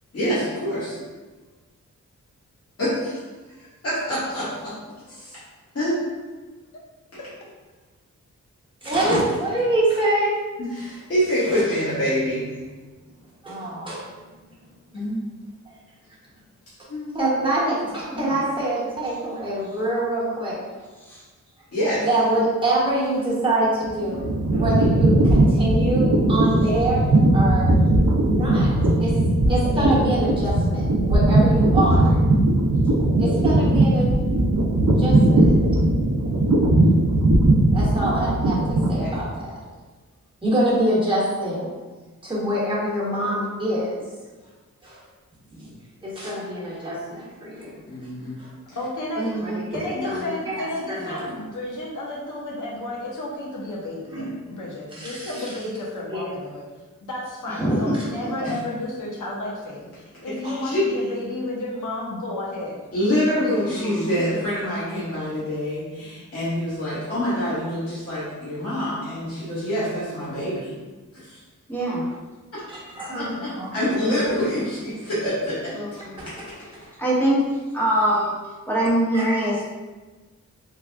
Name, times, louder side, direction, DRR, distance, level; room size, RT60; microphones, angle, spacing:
voice 1, 0.1-0.9 2.8-3.2 3.8-4.7 5.1-5.4 5.7-5.9 10.6-12.5 14.9-15.2 16.9-17.4 21.7-22.1 39.0-39.1 47.9-48.4 60.2-60.9 62.9-70.7 71.1-71.4 73.2-75.7, equal, 50° left, -11 dB, 1.3 m, -26 dB
voice 2, 8.8-10.4 11.4-11.6 13.4-14.1 15.6-15.7 17.1-20.9 22.0-24.2 24.5-27.7 28.3-28.7 29.0-29.1 29.5-32.2 33.2-34.1 35.0-35.4 37.7-39.6 40.4-41.7 42.2-44.0 44.8-45.0 45.6-45.7 46.0-47.8 48.4-48.5 49.4-51.3 54.1-54.3 54.9-55.5 56.1-56.2 57.9-58.0 72.9-73.8 79.1-79.6, right 1 dB, 15° right, -8 dB, 1.2 m, -25 dB
voice 3, 18.1-18.5 21.1-21.2 49.1-49.7 57.5-58.0 58.2-58.5 63.5-64.3 71.7-72.0 74.0-74.4 75.7-76.2 77.0-77.4 77.7-78.4 78.7-79.6, right 1 dB, 5° left, -7 dB, 1.0 m, -24 dB
sound 1, 23.8-39.3, right 1 dB, 60° right, 0.5 m, -19 dB
voice 4, 48.7-49.3 49.7-56.7 57.0-62.8, left 1 dB, 80° left, -3 dB, 0.9 m, -32 dB
3.4 x 2.3 x 3.4 m, 1.3 s
wide cardioid pair, 130°, 31 cm